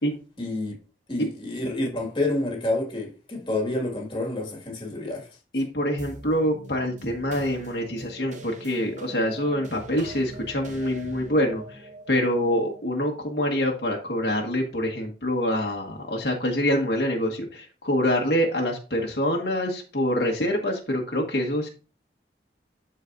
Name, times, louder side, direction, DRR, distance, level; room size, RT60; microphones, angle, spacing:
voice 1, 0.4-0.7 1.1-5.3, left 2 dB, 25° left, 2.0 m, -28 dB
voice 2, 5.5-21.7, equal, 65° left, 1.6 m, -25 dB
sound 1, 6.0-14.7, right 1 dB, 45° right, 0.7 m, -44 dB
12.5 x 4.4 x 2.6 m
head